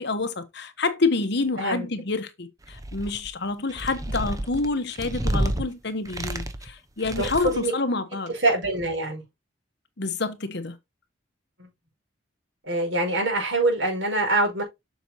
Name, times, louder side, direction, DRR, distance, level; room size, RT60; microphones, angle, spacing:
voice 1, 0.0-8.3 10.0-10.8, left 3 dB, 60° left, 1.2 m, -28 dB
sound 1, 2.6-3.3 3.7-5.6 6.1-6.7 7.0-7.7, right 1 dB, 20° right, 1.0 m, -29 dB
voice 2, 7.2-7.7 8.3-9.2 11.6-11.7 12.6-14.6, right 2 dB, 70° right, 5.5 m, -24 dB
7.7 x 6.6 x 2.9 m
head